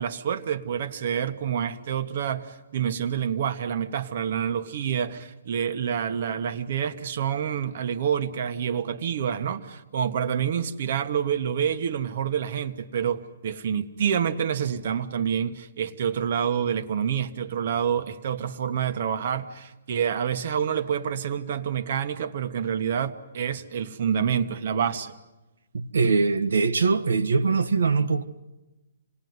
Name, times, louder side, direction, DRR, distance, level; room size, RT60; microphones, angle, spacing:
voice 1, 0.0-25.1, right 8 dB, 40° right, 1.2 m, -27 dB
voice 2, 25.7-28.2, right 4 dB, 85° right, 1.5 m, -22 dB
27.5 x 19.5 x 9.5 m
hypercardioid pair, 175°, 0 cm